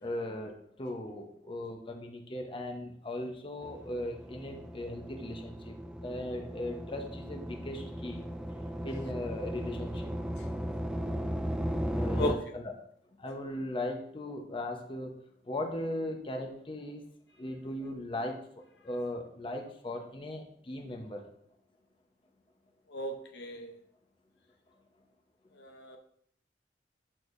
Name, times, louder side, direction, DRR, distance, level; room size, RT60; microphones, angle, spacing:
voice 1, 0.0-5.7 6.0-8.2 8.8-10.1 11.9-12.8 13.2-15.1 15.4-17.0 17.4-21.3, left 1 dB, 30° left, 3 dB, 0.9 m, -38 dB
sound 1, 3.6-12.3, equal, 5° right, 0.3 m, -36 dB
voice 2, 22.9-23.7 25.6-26.0, left 1 dB, 70° left, 4 dB, 0.8 m, -35 dB
9.0 x 6.3 x 2.6 m, 0.67 s
head